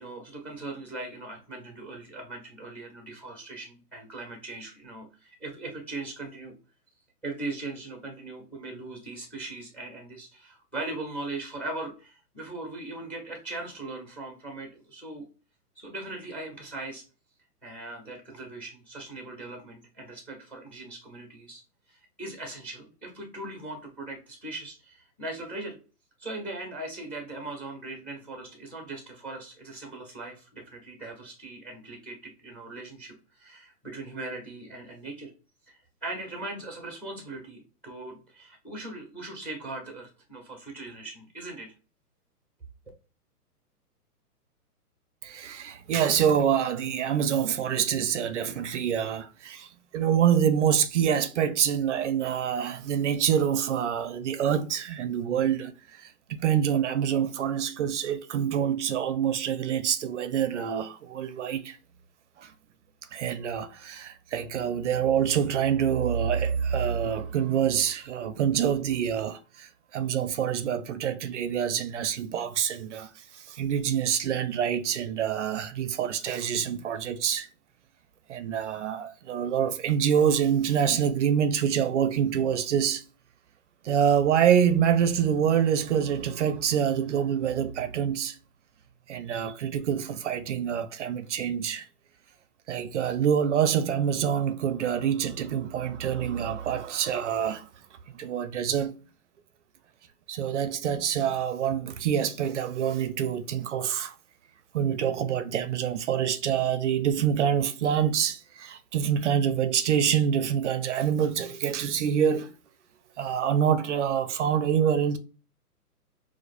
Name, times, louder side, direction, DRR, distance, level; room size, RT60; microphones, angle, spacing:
voice 1, 0.0-6.5 7.2-15.3 15.8-17.0 17.6-21.6 21.9-25.8 26.2-35.3 35.7-41.7, right 2 dB, 5° left, 0.6 m, -39 dB
voice 2, 45.2-49.7 49.9-61.8 62.4-62.5 63.1-73.1 73.5-77.5 78.3-83.0 83.8-88.4 89.1-91.8 92.7-97.7 98.1-98.9 100.3-104.1 104.7-112.5 113.2-115.2, right 8 dB, 50° right, 0.5 m, -26 dB
4.7 x 2.1 x 2.4 m
hypercardioid pair, 135°, 47 cm